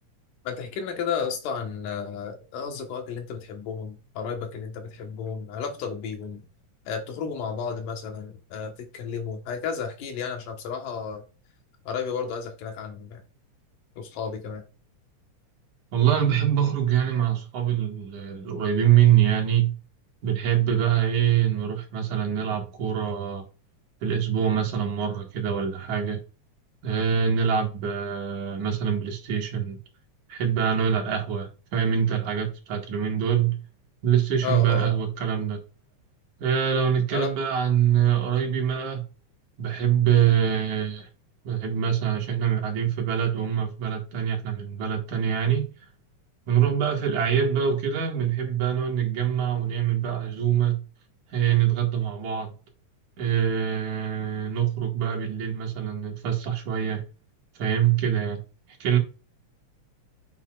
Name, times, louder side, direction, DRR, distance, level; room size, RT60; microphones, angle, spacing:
voice 1, 0.4-6.4 6.9-11.2 11.9-13.2 14.0-14.6 34.4-35.0 37.1-37.3, left 6 dB, 85° left, 3.0 m, -32 dB
voice 2, 15.9-19.7 20.2-23.4 24.0-26.2 26.8-29.8 30.3-33.6 34.0-35.6 36.4-39.0 39.6-41.1 41.4-45.7 46.5-50.8 51.3-52.5 53.2-57.0 57.6-58.4 58.8-59.0, right 9 dB, 70° right, 3.0 m, -24 dB
8.3 x 5.9 x 2.4 m
omnidirectional pair, 3.7 m